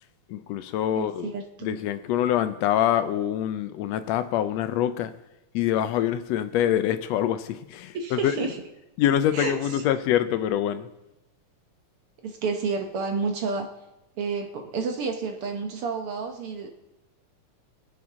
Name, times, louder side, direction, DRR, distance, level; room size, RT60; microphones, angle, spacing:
voice 1, 0.3-1.3 1.6-5.1 5.5-8.5 9.0-10.9, left 11 dB, 75° left, 11 dB, 1.6 m, -25 dB
voice 2, 1.0-1.8 7.9-8.5 9.3-9.6 12.2-13.7 14.2-16.7, right 4 dB, 65° right, 4 dB, 1.5 m, -30 dB
23.5 x 7.9 x 3.7 m, 0.95 s
omnidirectional pair, 3.4 m